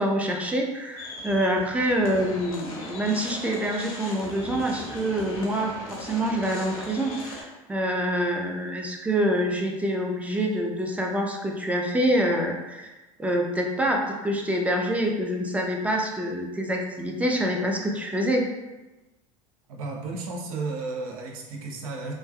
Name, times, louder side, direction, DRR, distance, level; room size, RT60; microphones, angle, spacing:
voice 1, 0.0-12.9 13.2-18.4, equal, 10° right, 0 dB, 0.4 m, -26 dB
sound 1, 1.0-7.4, left 1 dB, 85° left, 0.7 m, -39 dB
voice 2, 19.7-22.1, right 3 dB, 75° right, 0 dB, 0.6 m, -33 dB
3.2 x 2.3 x 2.2 m, 1.1 s
hypercardioid pair, 80°, 18 cm